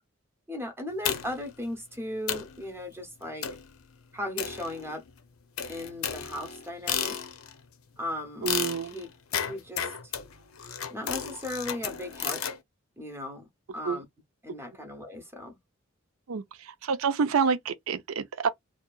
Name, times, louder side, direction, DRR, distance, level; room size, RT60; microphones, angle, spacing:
voice 1, 0.5-3.5 4.1-5.0 5.7-7.1 8.0-8.5 8.8-9.1 9.4-10.1 10.9-12.4 13.0-13.5 13.7-14.0 14.4-15.6, left 1 dB, 10° right, 0.7 m, -37 dB
sound 1, 1.0-1.5 1.9-2.0 2.3-2.6 3.4-3.7 4.4-5.1 5.6-7.6 8.5-12.6, left 8 dB, 85° left, 0.5 m, -33 dB
voice 2, 8.4-8.9 13.8-14.0 16.3-16.4 16.8-18.5, right 5 dB, 85° right, 0.5 m, -27 dB
2.8 x 2.3 x 2.3 m
head